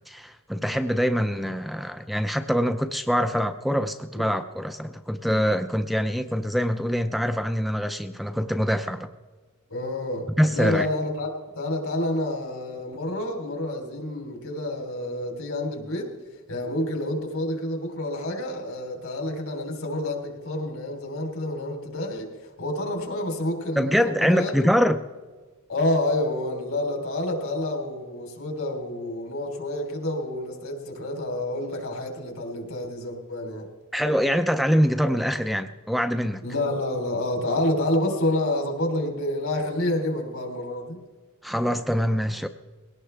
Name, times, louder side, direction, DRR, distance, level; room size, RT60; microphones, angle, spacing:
voice 1, 0.1-9.1 10.4-10.9 23.8-25.0 33.9-36.4 41.4-42.5, equal, ahead, 8 dB, 0.4 m, -24 dB
voice 2, 9.7-16.1 16.5-22.3 22.6-24.7 25.7-33.7 36.4-41.0, left 1 dB, 70° left, 2 dB, 3.5 m, -28 dB
21.5 x 17.5 x 3.4 m, 1.3 s
head